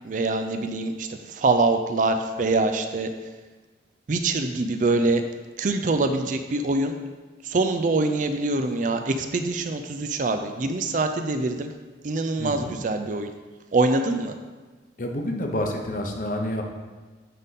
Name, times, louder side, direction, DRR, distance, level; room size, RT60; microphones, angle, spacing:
voice 1, 0.0-3.1 4.1-5.2 5.6-7.0 7.4-11.7 12.0-13.3 13.7-14.3, right 3 dB, 45° right, 7 dB, 0.4 m, -24 dB
voice 2, 12.4-12.7 15.0-16.6, left 1 dB, 45° left, 3 dB, 0.8 m, -28 dB
9.2 x 3.6 x 4.1 m, 1.3 s
head